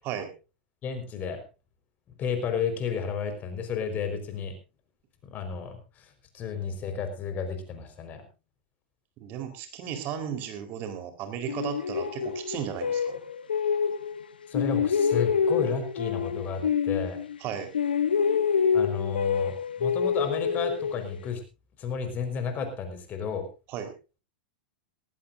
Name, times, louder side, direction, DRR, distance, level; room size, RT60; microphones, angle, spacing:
voice 1, 0.8-1.4 2.2-4.5 5.2-6.0 6.3-8.2 14.5-17.2 18.7-21.4 21.8-23.5, left 6 dB, 35° left, 7 dB, 4.8 m, -32 dB
voice 2, 9.2-13.2 17.4-17.7 23.7-23.9, right 9 dB, 45° right, 6 dB, 4.2 m, -35 dB
sound 1, 11.5-14.2 14.5-17.5 17.7-21.3, left 6 dB, 80° left, 1.1 m, -27 dB
18.5 x 18.5 x 2.6 m, 0.31 s
hypercardioid pair, 100°, 5 cm